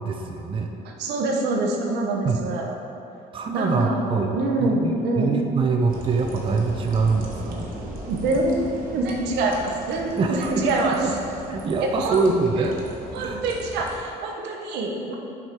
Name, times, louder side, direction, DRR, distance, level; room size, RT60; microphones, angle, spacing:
voice 1, 0.0-0.7 2.2-2.4 3.3-7.7 10.2-11.1 11.5-12.8 13.2-13.4, right 4 dB, 30° right, 3 dB, 0.5 m, -24 dB
voice 2, 0.8-2.8 3.5-5.4 7.8-11.0 12.0-12.3 13.1-15.1, right 2 dB, 85° right, 1 dB, 0.9 m, -25 dB
sound 1, 5.9-14.0, right 1 dB, 55° right, 1.2 m, -37 dB
6.4 x 4.9 x 4.4 m, 2.7 s
cardioid pair, 110°, 17 cm